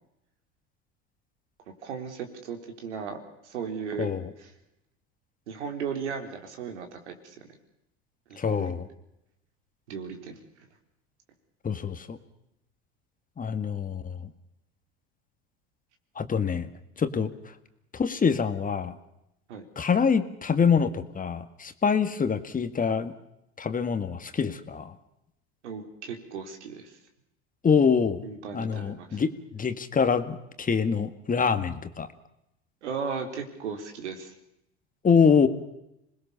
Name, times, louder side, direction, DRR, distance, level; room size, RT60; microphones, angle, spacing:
voice 1, 1.8-4.1 4.4-4.5 5.5-7.4 8.3-8.7 9.9-10.4 19.5-19.6 25.6-27.0 28.2-29.2 32.8-34.3, right 6 dB, 90° right, 5 dB, 4.0 m, -36 dB
voice 2, 8.4-8.9 11.6-12.2 13.4-14.3 16.2-16.7 17.0-17.3 17.9-19.0 19.8-23.1 23.6-24.9 27.6-28.2 28.5-32.1 35.0-35.5, left 6 dB, 25° left, 9 dB, 2.0 m, -25 dB
27.0 x 20.5 x 6.9 m, 0.85 s
hypercardioid pair, 95°, 34 cm